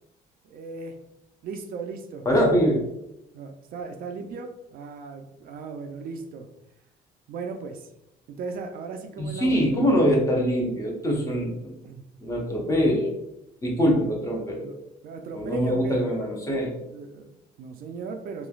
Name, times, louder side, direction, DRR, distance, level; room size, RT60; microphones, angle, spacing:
voice 1, 0.4-1.0 1.4-2.3 3.3-6.5 7.3-7.9 8.3-9.6 11.8-12.0 14.5-14.7 15.0-16.1 16.7-18.5, right 4 dB, 60° right, 5 dB, 0.4 m, -37 dB
voice 2, 2.2-2.8 9.2-11.8 12.2-13.1 13.6-14.8 15.3-16.7, equal, 20° left, -1 dB, 0.7 m, -23 dB
3.1 x 2.3 x 2.3 m, 0.86 s
cardioid pair, 110°, 17 cm